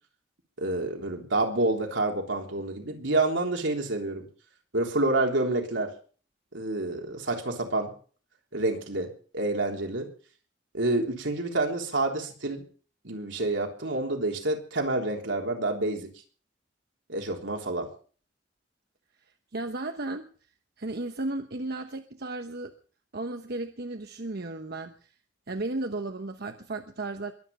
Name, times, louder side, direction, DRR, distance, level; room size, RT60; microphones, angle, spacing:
voice 1, 0.6-4.3 4.7-5.9 6.5-7.9 8.5-10.1 10.7-12.6 13.0-16.1 17.1-17.9, right 2 dB, 85° right, 2 dB, 3.5 m, -28 dB
voice 2, 19.5-20.3 20.8-22.7 23.1-25.1 25.5-27.3, right 2 dB, 60° right, 6 dB, 1.0 m, -34 dB
22.5 x 9.1 x 5.5 m, 0.42 s
head